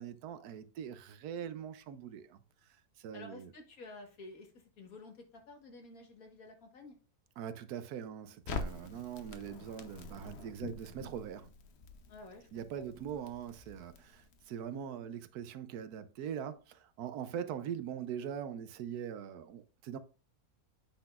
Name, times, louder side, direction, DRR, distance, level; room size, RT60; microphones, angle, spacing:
voice 1, 0.0-2.4 3.0-3.5 7.4-11.5 12.5-20.0, right 8 dB, 80° right, 1.2 m, -42 dB
voice 2, 3.1-4.5 4.8-7.0 12.1-12.5 12.7-12.9 17.4-17.6, left 2 dB, 65° left, 1.9 m, -51 dB
Crackle, 8.5-14.6, left 3 dB, 50° left, 1.0 m, -45 dB
8.5 x 5.8 x 2.4 m
omnidirectional pair, 1.6 m